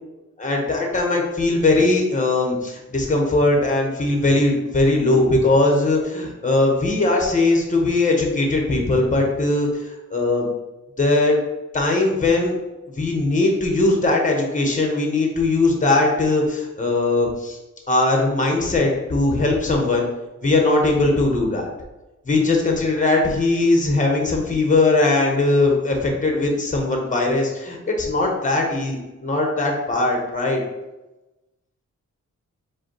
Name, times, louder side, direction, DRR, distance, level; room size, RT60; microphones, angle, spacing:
voice 1, 0.4-9.7 10.1-10.5 11.0-11.4 11.7-12.5 12.9-17.6 17.9-20.1 20.4-21.7 22.2-30.6, left 2 dB, 25° left, 1 dB, 1.0 m, -20 dB
5.0 x 2.3 x 4.5 m, 1.0 s
wide cardioid pair, 105°, 30 cm